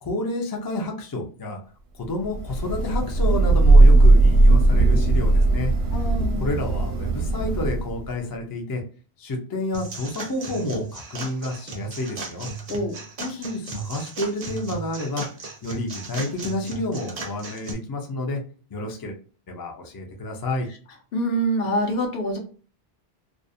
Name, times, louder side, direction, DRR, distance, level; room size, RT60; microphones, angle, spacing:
voice 1, 0.0-1.6 1.9-5.7 6.4-8.8 9.2-12.5 13.2-15.2 15.6-18.4 18.7-19.2 19.5-20.7, left 2 dB, 35° left, 2 dB, 0.4 m, -30 dB
Thunder / Rain, 2.3-8.1, right 2 dB, 75° right, 0.8 m, -17 dB
voice 2, 5.9-6.5 12.7-13.0 21.1-22.4, right 1 dB, 70° left, 2 dB, 0.8 m, -25 dB
sound 1, 9.7-17.7, right 3 dB, 45° right, 0.5 m, -36 dB
2.5 x 2.0 x 2.6 m, 0.39 s
omnidirectional pair, 1.1 m